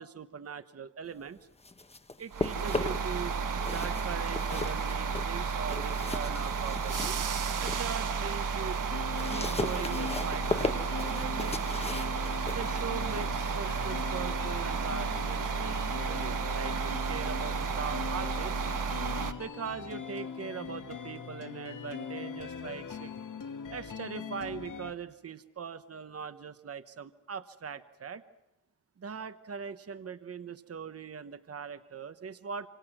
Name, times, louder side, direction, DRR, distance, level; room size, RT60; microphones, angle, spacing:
voice 1, 0.0-1.4 2.2-3.4 3.7-7.2 7.6-8.8 9.3-11.6 12.5-18.6 19.4-23.1 23.7-28.2 29.0-32.7, right 6 dB, 50° right, 11 dB, 1.1 m, -41 dB
sound 1, 1.4-3.2 3.5-7.9 8.3-14.9, left 2 dB, 20° left, 1.1 m, -38 dB
sound 2, 2.3-19.3, right 5 dB, 90° right, 1.5 m, -32 dB
sound 3, 8.9-24.9, left 6 dB, 85° left, 2.0 m, -41 dB
27.0 x 27.0 x 6.1 m, 0.99 s
wide cardioid pair, 165°, 30 cm